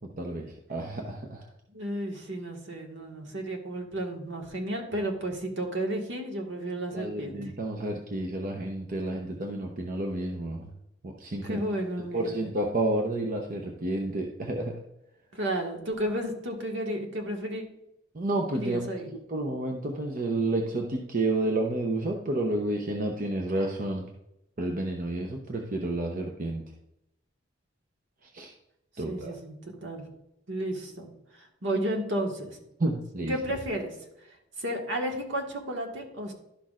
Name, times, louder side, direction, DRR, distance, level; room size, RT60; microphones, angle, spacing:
voice 1, 0.2-1.5 6.9-10.7 11.0-11.6 12.1-14.7 18.1-24.1 24.6-26.6 28.3-28.5 29.0-29.3 32.8-33.3, right 2 dB, 45° right, 1 dB, 0.8 m, -30 dB
voice 2, 1.7-7.4 11.4-12.4 15.3-17.6 18.5-19.1 29.1-30.0 30.5-32.6 33.3-33.9 34.6-36.3, right 1 dB, 70° right, 1 dB, 1.6 m, -32 dB
11.5 x 6.1 x 2.5 m, 0.84 s
head